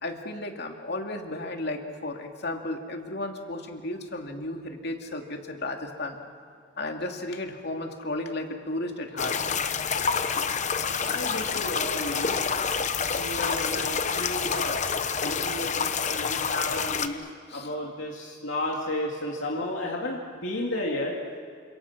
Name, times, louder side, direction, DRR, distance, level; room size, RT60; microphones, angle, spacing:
voice 1, 0.0-6.2 6.8-9.4 10.9-11.4 17.5-17.7, left 2 dB, 60° left, 3 dB, 2.7 m, -34 dB
sound 1, 9.2-17.1, left 6 dB, 40° left, 1.0 m, -28 dB
voice 2, 11.0-12.4 13.2-14.8 15.2-21.1, left 1 dB, 80° left, -2 dB, 2.7 m, -32 dB
29.0 x 27.0 x 6.1 m, 2.3 s
head